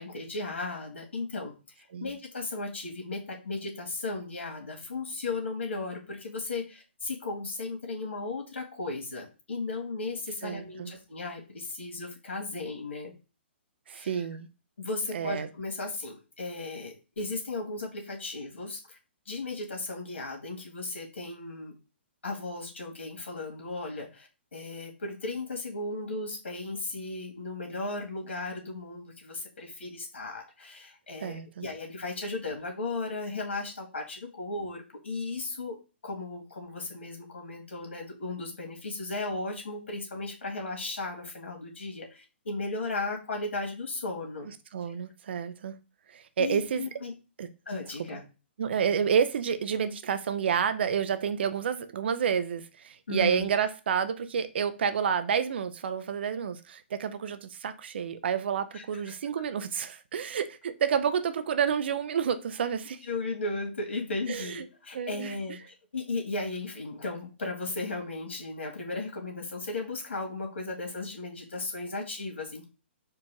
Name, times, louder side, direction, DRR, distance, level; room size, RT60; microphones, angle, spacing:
voice 1, 0.0-1.5 2.0-13.1 13.9-14.2 14.8-19.0 19.3-21.7 22.2-35.8 36.0-44.5 44.9-45.0 46.4-47.1 47.7-48.2 53.1-53.5 58.7-59.1 63.1-72.6, left 3 dB, 80° left, 1.9 m, -36 dB
voice 2, 10.4-10.9 13.9-14.5 15.1-15.5 31.2-31.6 44.7-45.7 46.1-46.8 47.4-47.5 48.6-63.0 64.3-64.7 64.9-65.4, right 7 dB, 65° right, 0.6 m, -29 dB
4.5 x 2.5 x 4.5 m
hypercardioid pair, 135°, 6 cm